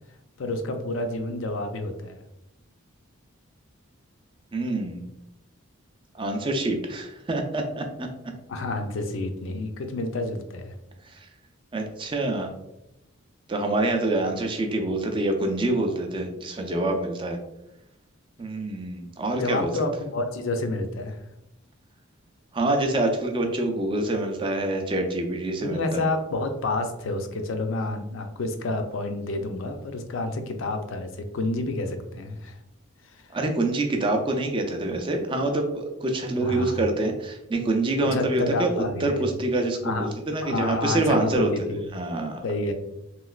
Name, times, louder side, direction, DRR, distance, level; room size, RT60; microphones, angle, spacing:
voice 1, 0.4-2.2 8.5-10.7 19.4-21.2 25.6-32.6 33.1-33.3 36.4-36.8 38.0-39.3 39.8-40.1 40.4-41.9 42.4-42.7, left 2 dB, 65° left, 6 dB, 0.4 m, -29 dB
voice 2, 4.5-5.0 6.1-8.1 11.7-12.5 13.5-17.4 18.4-19.7 22.5-26.1 33.3-41.5 41.9-42.4, right 2 dB, 25° right, 3 dB, 0.4 m, -26 dB
3.1 x 2.8 x 2.3 m, 0.88 s
head